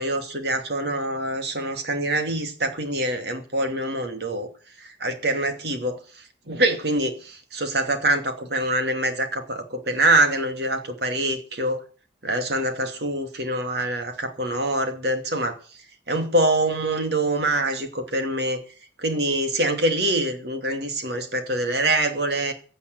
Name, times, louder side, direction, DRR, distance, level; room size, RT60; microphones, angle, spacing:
voice 1, 0.0-4.5 4.8-6.0 6.5-11.8 12.2-15.6 16.1-18.6 19.0-22.5, right 1 dB, 60° right, 2.6 m, -25 dB
16.0 x 8.2 x 7.9 m
head